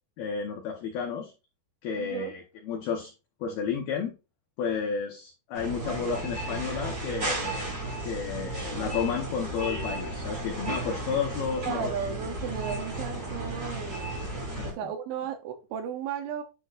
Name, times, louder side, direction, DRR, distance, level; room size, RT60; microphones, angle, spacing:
voice 1, 0.2-1.3 1.8-3.1 3.4-4.1 4.6-7.7 8.1-11.9 14.6-14.8, left 6 dB, 90° left, 2.1 m, -32 dB
voice 2, 2.0-2.3 11.6-14.3 14.6-16.4, right 8 dB, 80° right, 2.8 m, -35 dB
sound 1, 5.5-14.7, right 1 dB, 40° right, 1.3 m, -34 dB
10.5 x 4.3 x 2.4 m
omnidirectional pair, 5.8 m